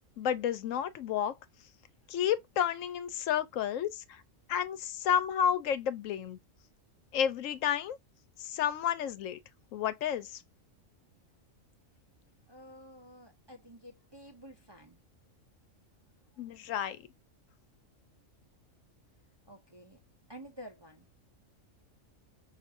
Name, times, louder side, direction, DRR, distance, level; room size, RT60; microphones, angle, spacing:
voice 1, 0.2-1.3 2.1-4.2 4.5-6.4 7.1-8.0 8.4-9.4 9.7-10.4 16.4-17.0, left 9 dB, 80° left, 1.0 m, -31 dB
voice 2, 12.5-15.0 19.4-20.0 20.3-21.1, equal, 30° right, 0.5 m, -51 dB
5.8 x 2.6 x 2.5 m
omnidirectional pair, 1.4 m